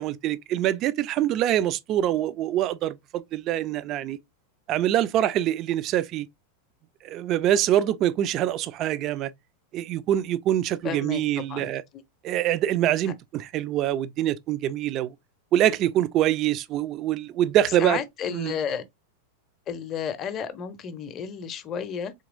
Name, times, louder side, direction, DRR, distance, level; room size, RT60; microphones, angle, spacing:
voice 1, 0.0-4.2 4.7-6.3 7.0-9.3 9.7-11.8 12.2-15.1 15.5-18.0 18.3-18.6, right 12 dB, 35° right, 0.3 m, -24 dB
voice 2, 10.8-11.7 17.8-18.8 19.7-22.1, left 7 dB, 30° left, 0.6 m, -32 dB
3.8 x 2.9 x 2.5 m
figure-of-eight pair, 90°, 0 cm